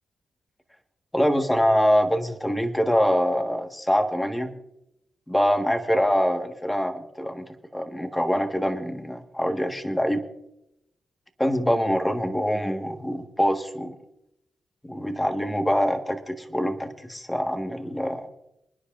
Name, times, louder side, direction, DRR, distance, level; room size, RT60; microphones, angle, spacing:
voice 1, 1.1-4.5 5.3-7.5 7.7-10.2 11.4-14.0 14.8-18.3, equal, 10° left, 5 dB, 1.5 m, -24 dB
26.5 x 10.0 x 2.6 m, 0.83 s
cardioid pair, 70°, 0 cm